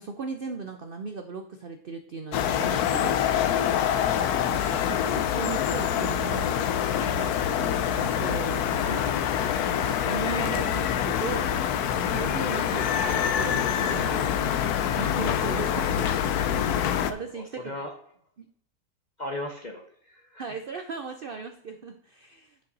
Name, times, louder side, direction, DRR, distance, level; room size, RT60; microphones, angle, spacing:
voice 1, 0.0-3.2 4.5-6.6 7.0-9.2 10.0-11.7 12.1-14.7 14.9-16.1 16.9-17.8 20.4-22.6, right 5 dB, 75° right, 6 dB, 0.5 m, -37 dB
sound 1, 2.3-17.1, left 9 dB, 70° left, 1.1 m, -25 dB
voice 2, 16.7-18.0 19.2-20.6, left 1 dB, 40° left, 3 dB, 0.6 m, -39 dB
9.9 x 5.5 x 4.0 m, 0.71 s
omnidirectional pair, 1.8 m